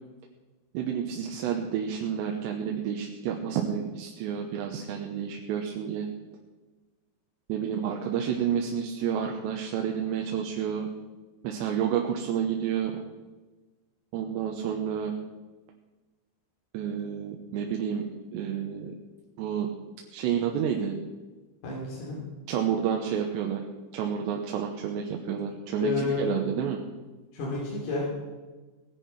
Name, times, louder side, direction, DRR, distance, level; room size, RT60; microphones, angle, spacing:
voice 1, 0.7-6.1 7.5-10.9 11.4-13.0 14.1-15.1 16.7-18.1 18.3-18.9 19.4-19.7 20.1-20.9 22.5-23.6 23.9-26.8, right 8 dB, 85° right, 2 dB, 3.3 m, -30 dB
voice 2, 21.6-22.2 25.8-26.4 27.3-28.0, left 4 dB, 65° left, -5 dB, 5.4 m, -30 dB
18.5 x 10.5 x 6.0 m, 1.3 s
omnidirectional pair, 5.0 m